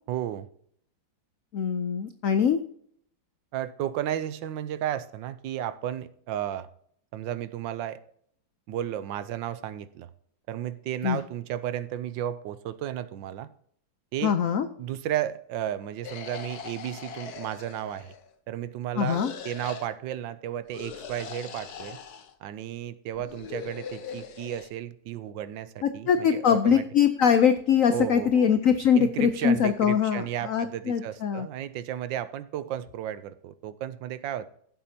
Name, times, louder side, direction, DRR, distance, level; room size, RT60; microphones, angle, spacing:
voice 1, 0.1-0.5 3.5-6.7 7.1-8.0 8.7-10.1 10.5-13.5 14.1-14.4 14.8-18.1 18.5-22.0 22.4-26.8 27.9-28.5 28.9-34.5, right 11 dB, 75° right, 14 dB, 1.3 m, -33 dB
voice 2, 1.5-2.6 11.0-11.2 14.2-14.7 19.0-19.3 25.8-31.5, left 7 dB, 85° left, 10 dB, 0.7 m, -23 dB
sound 1, 16.0-18.3 19.0-19.9 20.7-22.3 23.1-24.7, left 6 dB, 55° left, 1.3 m, -41 dB
15.5 x 7.7 x 2.8 m, 0.63 s
omnidirectional pair, 2.2 m